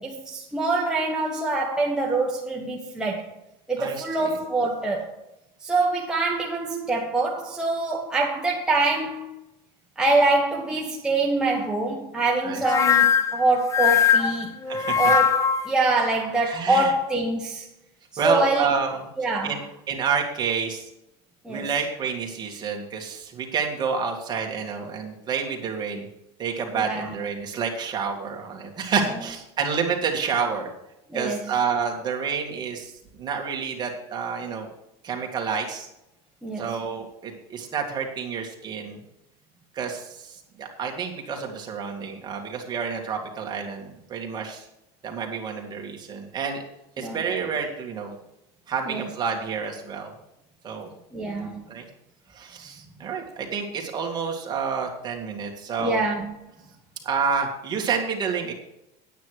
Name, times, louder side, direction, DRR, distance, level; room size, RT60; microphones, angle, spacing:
voice 1, 0.0-3.3 3.7-5.2 5.6-9.4 10.0-14.5 15.0-17.7 18.1-18.7 19.2-19.6 21.4-21.7 26.7-27.2 31.1-31.6 36.4-36.8 47.0-47.2 48.9-49.1 51.1-51.6 55.8-56.3, right 2 dB, 5° right, 1.3 m, -25 dB
voice 2, 3.8-4.3 12.4-12.6 14.7-15.0 16.5-16.9 18.2-19.0 19.4-19.6 19.9-20.9 21.5-26.1 26.4-30.7 31.1-32.9 33.2-34.7 35.0-35.9 36.6-39.0 39.7-44.6 45.0-46.6 47.0-48.2 48.7-50.1 50.6-50.9 51.7-51.9 52.3-56.0 57.0-58.5, right 6 dB, 30° right, 2.3 m, -29 dB
sound 1, 12.6-15.7, left 7 dB, 20° left, 0.6 m, -20 dB
9.7 x 9.2 x 4.9 m
supercardioid pair, 145°, 15 cm